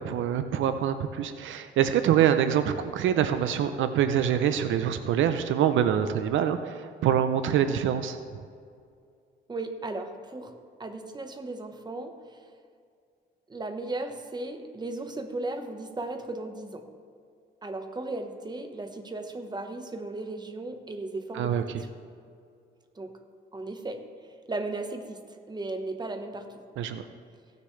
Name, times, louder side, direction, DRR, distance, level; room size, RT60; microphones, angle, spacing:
voice 1, 0.0-8.2 21.3-21.6 26.8-27.0, right 9 dB, 75° right, 9 dB, 0.6 m, -25 dB
voice 2, 9.5-12.4 13.5-16.8 17.6-21.9 22.9-23.1 23.5-24.1 24.5-25.2 25.5-26.5, right 2 dB, 20° right, 5 dB, 1.1 m, -36 dB
16.5 x 6.7 x 3.2 m, 2.3 s
cardioid pair, 90°, 20 cm